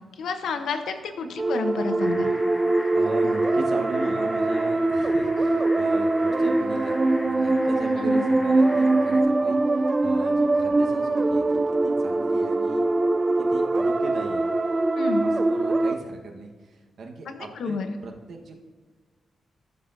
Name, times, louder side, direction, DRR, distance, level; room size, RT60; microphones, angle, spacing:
voice 1, 0.2-2.3 8.0-8.2 15.0-15.3 17.3-17.9, left 5 dB, 85° left, 7 dB, 0.8 m, -30 dB
sound 1, 1.4-15.9, right 2 dB, 20° right, 0.4 m, -22 dB
sound 2, 2.0-9.2, left 2 dB, 20° left, 0.9 m, -42 dB
voice 2, 2.9-12.9 13.4-14.5 15.2-18.6, right 3 dB, 60° right, 2 dB, 1.2 m, -38 dB
14.0 x 6.6 x 2.6 m, 1.4 s
wide cardioid pair, 165°, 0 cm